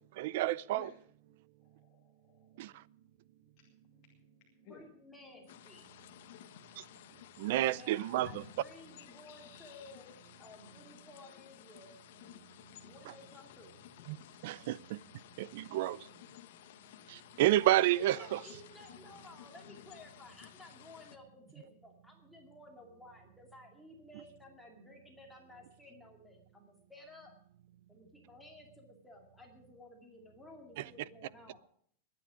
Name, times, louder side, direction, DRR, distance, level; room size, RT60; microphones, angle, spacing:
voice 1, 0.2-0.9 2.6-2.7 6.8-6.9 7.4-8.4 14.1-14.2 14.4-15.0 15.4-16.0 17.1-18.4 30.8-30.9, right 14 dB, 50° right, 0.5 m, -30 dB
voice 2, 1.6-3.1 3.5-5.8, left 7 dB, 30° left, 2.5 m, -60 dB
voice 3, 4.7-6.0 7.7-10.1 10.4-12.0 12.8-13.8 17.9-27.3 27.9-31.6, left 2 dB, 5° left, 2.3 m, -55 dB
sound 1, 5.5-21.2, left 12 dB, 55° left, 1.1 m, -55 dB
21.5 x 9.8 x 5.0 m
supercardioid pair, 175°, 0 cm